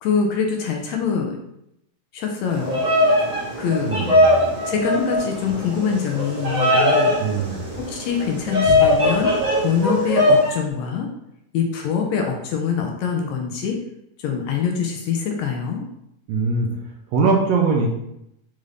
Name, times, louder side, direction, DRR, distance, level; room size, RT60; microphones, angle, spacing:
voice 1, 0.0-1.4 2.1-2.8 3.6-4.1 4.7-7.2 7.8-11.1 11.5-13.8 14.2-15.8, left 6 dB, 80° left, 2 dB, 1.8 m, -24 dB
Bird vocalization bird call bird song, 2.5-10.5, left 1 dB, 30° right, 0.6 m, -20 dB
voice 2, 3.8-4.3 7.2-7.6 16.3-16.7 17.1-17.9, right 4 dB, 80° right, 1 dB, 1.7 m, -21 dB
5.4 x 2.5 x 3.2 m, 0.80 s
omnidirectional pair, 3.4 m